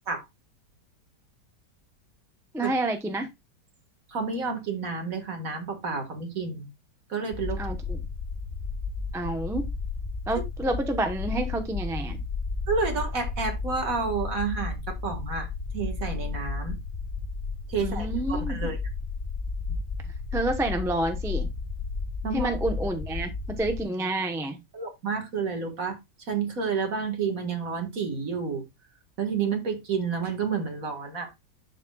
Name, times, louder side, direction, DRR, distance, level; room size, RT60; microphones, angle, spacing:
voice 1, 2.5-3.3 7.6-8.0 9.1-9.7 10.3-12.2 17.8-18.6 20.3-21.5 22.3-24.6, right 2 dB, 5° right, 0.6 m, -29 dB
voice 2, 4.1-6.7 7.1-7.6 12.7-15.5 15.7-16.8 17.7-18.8 22.2-22.5 24.7-26.0 26.3-28.6 29.2-31.3, right 5 dB, 50° right, 2.2 m, -30 dB
sound 1, 7.3-23.8, left 4 dB, 30° left, 1.3 m, -33 dB
11.0 x 5.2 x 2.3 m
omnidirectional pair, 1.8 m